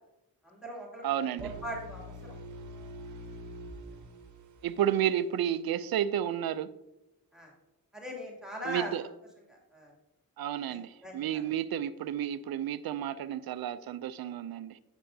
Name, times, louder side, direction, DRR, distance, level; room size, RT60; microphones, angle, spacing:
voice 1, 0.4-1.0 1.4-2.4 3.9-4.0 7.3-7.5 7.9-8.9 9.5-9.9 10.7-11.4, equal, ahead, 2.6 m, -40 dB
voice 2, 1.0-1.5 4.6-6.7 8.7-9.0 10.4-14.8, right 10 dB, 75° right, 0.5 m, -31 dB
sound 1, 1.4-5.3, right 1 dB, 55° right, 1.0 m, -45 dB
10.0 x 8.0 x 2.7 m
cardioid pair, 75°, 36 cm